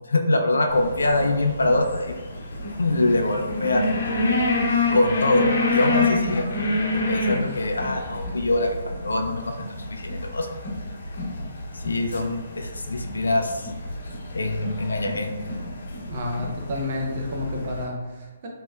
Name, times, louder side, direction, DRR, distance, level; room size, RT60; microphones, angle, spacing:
voice 1, 0.1-2.1 2.8-3.9 4.9-6.5 7.1-10.5 11.7-13.7 14.3-15.3, left 2 dB, 85° left, 4 dB, 0.4 m, -24 dB
sound 1, 0.7-17.8, left 2 dB, 60° left, 0.7 m, -28 dB
voice 2, 16.1-18.5, left 2 dB, 45° right, 0 dB, 0.6 m, -30 dB
3.0 x 2.7 x 2.3 m, 1.1 s
hypercardioid pair, 145°, 0 cm